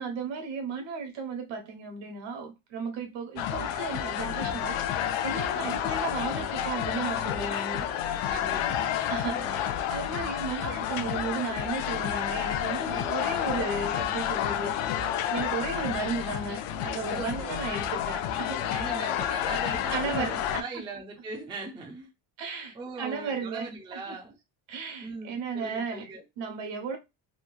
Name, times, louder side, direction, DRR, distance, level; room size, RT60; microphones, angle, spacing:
voice 1, 0.0-8.3 9.1-19.0 19.9-20.6 22.4-24.0 24.7-26.0 26.4-27.0, right 4 dB, 65° right, 1.1 m, -35 dB
sound 1, 3.4-20.6, left 10 dB, 80° left, 0.5 m, -30 dB
voice 2, 8.3-9.1 17.1-17.6 18.7-22.1 22.7-24.4 25.0-26.3, right 3 dB, 10° right, 0.3 m, -40 dB
3.1 x 2.2 x 2.3 m
cardioid pair, 160°, 48 cm